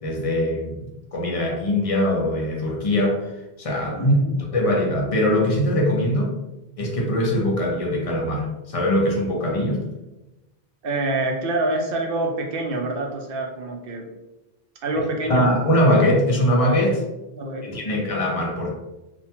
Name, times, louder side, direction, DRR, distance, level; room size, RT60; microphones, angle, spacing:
voice 1, 0.0-3.3 3.6-4.1 4.5-6.3 6.8-9.8 15.3-17.0 17.6-18.7, left 1 dB, 45° left, -1 dB, 0.5 m, -22 dB
voice 2, 4.0-4.4 10.8-14.0 14.8-15.5 17.3-17.7 17.9-18.1, right 2 dB, 65° right, 1 dB, 0.7 m, -26 dB
2.5 x 2.1 x 2.9 m, 1.0 s
omnidirectional pair, 1.1 m